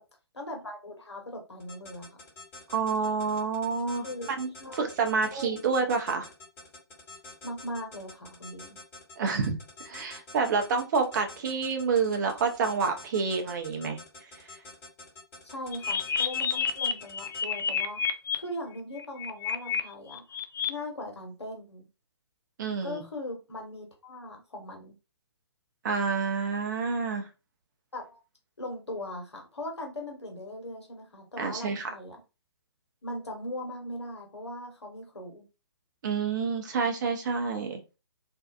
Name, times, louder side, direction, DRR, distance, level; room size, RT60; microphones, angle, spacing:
voice 1, 0.3-2.2 4.0-4.3 4.6-5.9 7.4-8.8 15.4-18.0 18.3-20.4 20.7-21.8 22.8-24.9 27.9-28.2 28.6-32.2 33.0-35.4, left 1 dB, 80° left, 2 dB, 1.1 m, -39 dB
sound 1, 1.6-17.4, left 3 dB, 15° left, 1.2 m, -47 dB
voice 2, 2.7-4.1 4.4-6.3 9.2-9.6 9.8-14.0 22.6-23.0 25.8-27.3 31.4-31.9 36.0-37.8, right 5 dB, 45° right, 4 dB, 0.7 m, -28 dB
sound 2, 15.7-18.3 19.0-19.8 20.1-20.7, left 7 dB, 45° left, 0.4 m, -29 dB
2.6 x 2.3 x 2.3 m, 0.29 s
figure-of-eight pair, 130°, 14 cm